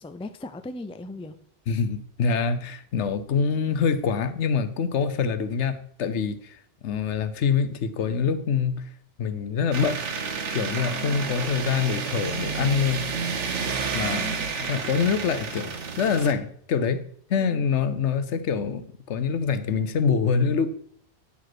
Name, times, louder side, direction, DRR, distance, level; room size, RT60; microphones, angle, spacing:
voice 1, 0.0-1.4 14.0-14.5 17.4-17.6, left 2 dB, 10° left, 0.3 m, -38 dB
voice 2, 1.7-8.9 9.2-10.0 10.5-13.1 13.9-14.3 14.6-17.0 17.3-20.7, left 6 dB, 85° left, 1.1 m, -25 dB
sound 1, 9.7-16.3, right 5 dB, 90° right, 1.4 m, -30 dB
9.8 x 5.0 x 6.0 m
omnidirectional pair, 1.2 m